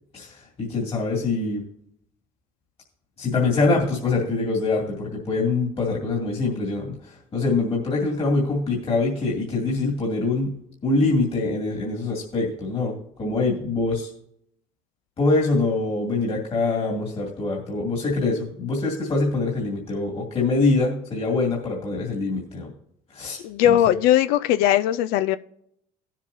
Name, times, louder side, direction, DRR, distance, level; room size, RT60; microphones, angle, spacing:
voice 1, 0.1-1.6 3.2-10.5 10.8-14.1 15.2-22.7 23.1-23.9, left 3 dB, 40° left, 2.4 m, -24 dB
voice 2, 23.4-25.4, left 11 dB, 90° left, 0.4 m, -19 dB
17.0 x 7.4 x 2.7 m
cardioid pair, 95°, 15 cm